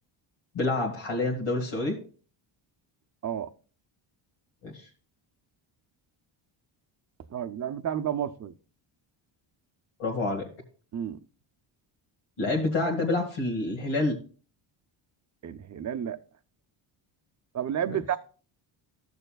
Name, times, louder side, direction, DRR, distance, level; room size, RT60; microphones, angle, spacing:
voice 1, 0.5-2.0 4.6-4.9 10.0-10.5 12.4-14.2, left 2 dB, 85° left, 1.9 m, -28 dB
voice 2, 7.3-8.5 10.9-11.2 15.4-16.2 17.5-18.2, right 9 dB, 35° right, 0.5 m, -31 dB
15.0 x 6.7 x 2.3 m
cardioid pair, 125°, 50 cm